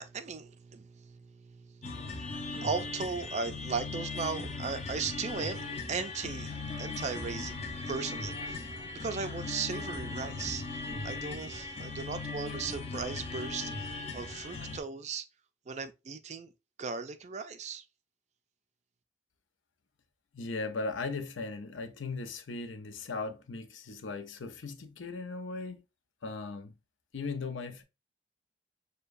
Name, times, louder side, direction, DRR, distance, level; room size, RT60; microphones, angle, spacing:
voice 1, 0.0-7.6 7.9-15.3 15.7-16.5 16.8-17.8, right 5 dB, 35° right, 0.3 m, -37 dB
sound 1, 1.8-14.8, left 3 dB, 35° left, 0.6 m, -38 dB
voice 2, 20.3-25.8 26.2-26.8 27.1-27.8, left 3 dB, 80° left, 0.6 m, -38 dB
6.6 x 2.2 x 2.5 m
head